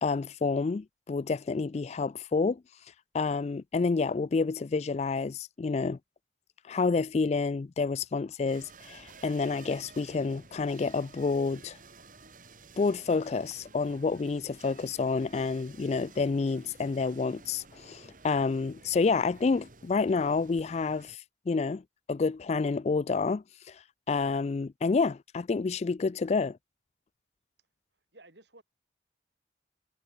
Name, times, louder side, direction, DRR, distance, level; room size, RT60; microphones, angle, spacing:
voice 1, 0.0-2.6 3.1-6.0 6.7-11.8 12.8-21.8 22.1-23.8 24.1-26.6, left 4 dB, 35° left, 0.3 m, -29 dB
sound 1, 8.5-21.2, right 3 dB, 45° right, 4.1 m, -53 dB
voice 2, 27.9-28.6, right 2 dB, 70° right, 5.7 m, -55 dB
head